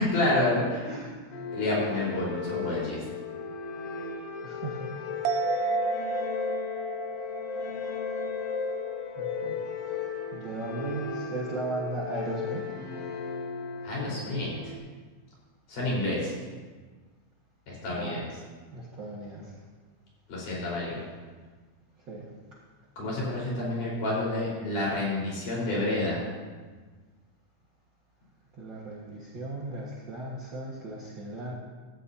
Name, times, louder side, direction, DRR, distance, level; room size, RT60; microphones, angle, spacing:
voice 1, 0.0-0.8 1.5-3.0 13.8-14.7 15.7-16.3 17.7-18.2 20.3-20.9 23.0-26.2, left 2 dB, 80° left, -6 dB, 6.0 m, -29 dB
voice 2, 0.8-1.3 4.4-4.8 9.2-9.6 10.3-12.7 17.9-18.2 18.7-19.5 22.1-22.3 28.6-31.5, right 2 dB, 45° right, -6 dB, 2.0 m, -36 dB
sound 1, 1.3-14.8, left 5 dB, 60° left, 2.0 m, -35 dB
sound 2, 5.3-9.0 9.3-9.4, right 5 dB, 85° right, 2.1 m, -33 dB
15.5 x 14.0 x 2.8 m, 1.4 s
omnidirectional pair, 3.6 m